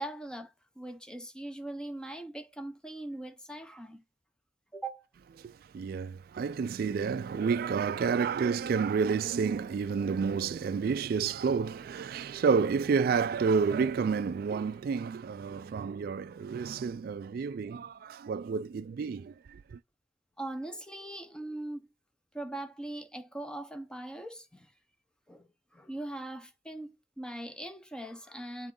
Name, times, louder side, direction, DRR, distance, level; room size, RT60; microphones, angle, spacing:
voice 1, 0.0-4.0 4.7-5.1 20.4-21.9 22.3-24.7 25.3-28.7, right 1 dB, 5° left, 0.8 m, -41 dB
voice 2, 5.4-19.8, right 5 dB, 55° right, 0.3 m, -30 dB
7.4 x 3.9 x 3.8 m
head